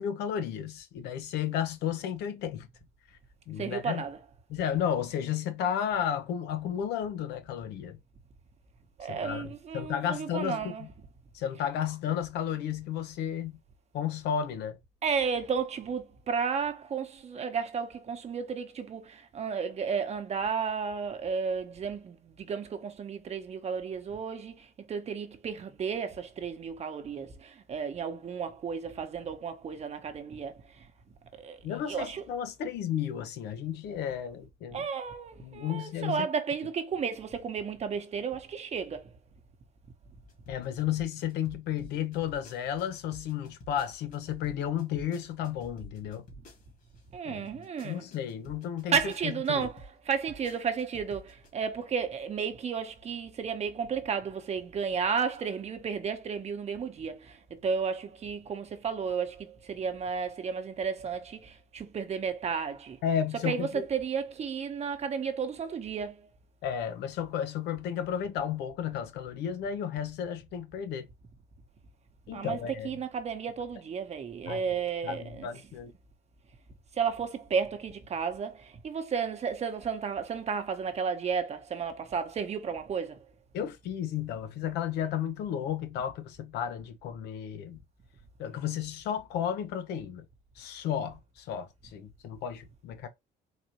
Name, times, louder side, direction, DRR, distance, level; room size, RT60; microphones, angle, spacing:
voice 1, 0.0-2.7 3.5-4.0 4.5-8.0 9.1-10.9 11.3-13.6 13.9-14.8 31.6-34.9 35.4-36.3 40.5-46.2 47.2-47.5 47.8-49.7 63.0-63.8 66.6-71.1 72.3-72.9 74.5-74.6 75.0-75.9 83.5-87.8 88.4-90.2 90.6-93.1, left 9 dB, 85° left, 0.8 m, -33 dB
voice 2, 3.6-4.2 9.0-10.9 15.0-30.6 31.4-31.6 31.9-32.2 34.7-39.1 47.1-48.0 48.9-63.0 63.4-66.2 72.3-75.5 77.0-83.2, right 6 dB, 40° right, 0.9 m, -33 dB
sound 1, 40.3-47.0 47.5-51.5, equal, 55° left, 1.9 m, -50 dB
4.1 x 2.6 x 2.9 m
cardioid pair, 110°, 17 cm